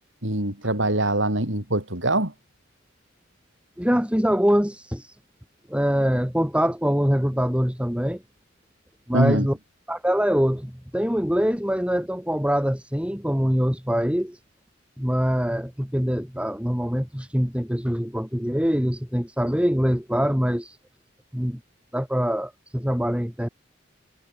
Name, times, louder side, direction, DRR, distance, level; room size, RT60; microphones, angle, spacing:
voice 1, 0.2-2.3 9.1-9.5, right 1 dB, 80° right, 7.8 m, -23 dB
voice 2, 3.8-5.2 5.7-8.2 9.1-9.6 9.9-14.4 15.0-20.8 21.3-21.6 21.9-23.5, equal, 5° right, 3.3 m, -24 dB
head